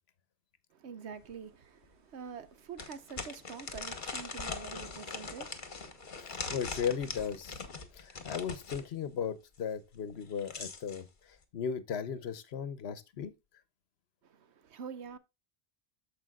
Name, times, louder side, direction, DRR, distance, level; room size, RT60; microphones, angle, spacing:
voice 1, 0.7-6.4 14.2-15.2, right 6 dB, 90° right, 1.1 m, -46 dB
sound 1, 1.3-1.4 1.8-1.9 2.8-8.9 10.1-11.0, left 4 dB, 50° left, 1.2 m, -41 dB
voice 2, 6.2-7.7 7.9-11.1 11.5-13.3, left 7 dB, 75° left, 1.0 m, -36 dB
14.0 x 5.0 x 2.3 m
omnidirectional pair, 1.1 m